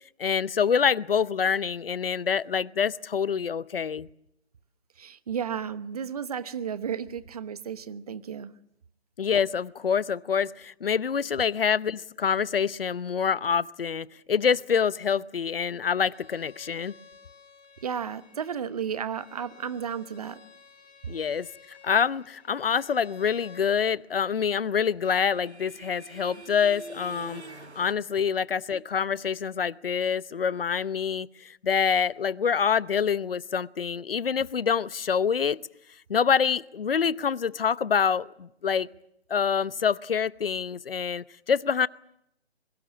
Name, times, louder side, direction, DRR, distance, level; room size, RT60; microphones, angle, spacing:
voice 1, 0.2-4.1 9.2-16.9 21.1-27.4 27.7-35.6 36.1-38.9 39.3-41.9, left 7 dB, 60° left, 19 dB, 0.8 m, -26 dB
voice 2, 5.0-8.5 17.8-20.4, right 7 dB, 35° right, 15 dB, 1.0 m, -33 dB
Bowed string instrument, 16.1-23.7, left 5 dB, 40° left, 3.9 m, -54 dB
sound 1, 24.1-27.9, right 3 dB, 85° right, 1.7 m, -46 dB
24.5 x 22.5 x 7.3 m, 0.76 s
figure-of-eight pair, 150°, 32 cm